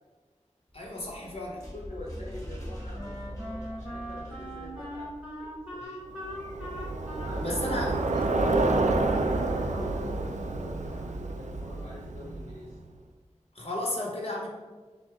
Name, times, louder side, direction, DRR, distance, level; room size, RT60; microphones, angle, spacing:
voice 1, 0.7-1.6 7.4-7.9 13.5-14.5, left 1 dB, 50° left, -2 dB, 1.1 m, -33 dB
sound 1, 0.7-5.8, equal, 25° left, 1.3 m, -42 dB
voice 2, 1.7-5.1 5.4-6.0 7.2-12.8, left 1 dB, 70° left, -6 dB, 0.8 m, -44 dB
Wind instrument woodwind instrument, 2.9-10.3, equal, 10° right, 1.2 m, -41 dB
Bicycle, 6.2-12.7, right 2 dB, 80° right, 0.4 m, -29 dB
6.2 x 2.1 x 3.5 m, 1.4 s
wide cardioid pair, 60°, 12 cm